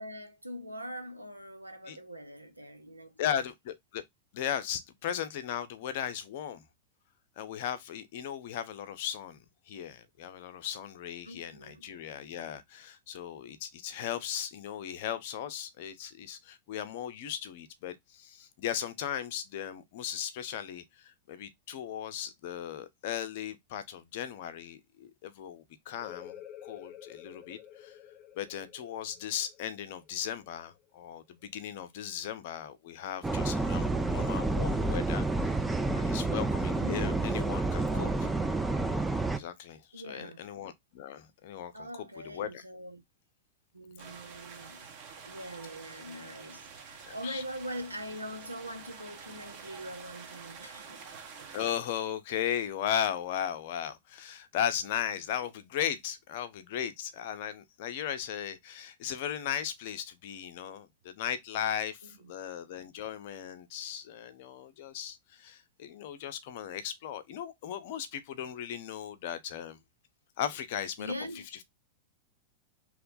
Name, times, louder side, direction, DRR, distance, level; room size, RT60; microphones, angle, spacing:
voice 1, 0.0-3.3 11.2-11.9 36.8-37.0 39.9-40.4 41.7-43.0 43.7-44.9 45.3-51.0 62.0-62.3 71.0-71.5, equal, 85° right, 0.6 m, -42 dB
voice 2, 3.2-4.0 4.3-6.6 7.4-26.4 26.6-28.0 28.4-35.3 35.9-38.3 39.3-42.6 47.0-47.4 51.5-69.8 70.4-71.1, left 9 dB, 50° left, 0.6 m, -37 dB
sound 1, 26.0-31.4, left 10 dB, 25° left, 0.9 m, -50 dB
sound 2, 33.2-39.4, right 2 dB, 10° right, 0.4 m, -29 dB
sound 3, 44.0-51.7, right 5 dB, 45° right, 1.0 m, -48 dB
2.9 x 2.1 x 3.9 m
figure-of-eight pair, 90°, 0 cm